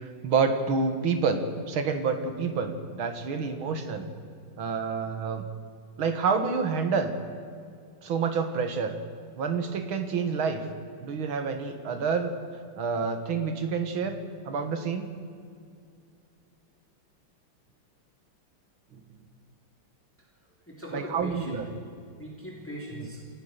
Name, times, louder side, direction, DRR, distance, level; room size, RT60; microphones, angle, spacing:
voice 1, 0.0-4.1 4.6-5.5 6.0-7.1 8.0-9.0 9.4-10.6 11.0-12.3 12.8-14.2 14.5-15.1 18.9-19.0 20.9-21.7, right 5 dB, 85° right, 8 dB, 2.3 m, -28 dB
voice 2, 20.2-21.6 22.2-23.2, equal, 5° left, -2 dB, 3.2 m, -41 dB
28.5 x 14.5 x 6.7 m, 2.3 s
omnidirectional pair, 2.2 m